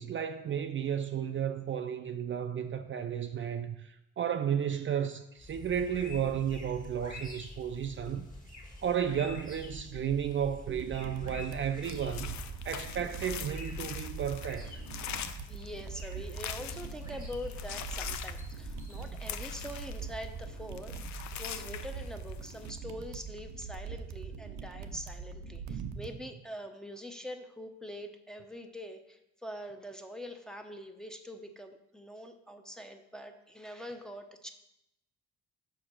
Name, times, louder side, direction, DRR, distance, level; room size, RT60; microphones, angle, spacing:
voice 1, 0.0-8.3 8.8-12.4 12.6-14.7 25.7-26.0, right 8 dB, 40° right, 0.4 m, -33 dB
sound 1, 5.4-24.8, left 2 dB, 25° left, 1.6 m, -47 dB
sound 2, 10.7-26.1, right 5 dB, 85° right, 0.6 m, -43 dB
sound 3, 11.8-17.1 17.4-20.4 20.7-22.7, left 10 dB, 70° left, 0.5 m, -43 dB
voice 2, 15.5-34.5, equal, ahead, 0.7 m, -44 dB
5.3 x 5.0 x 5.8 m
cardioid pair, 90°, 30 cm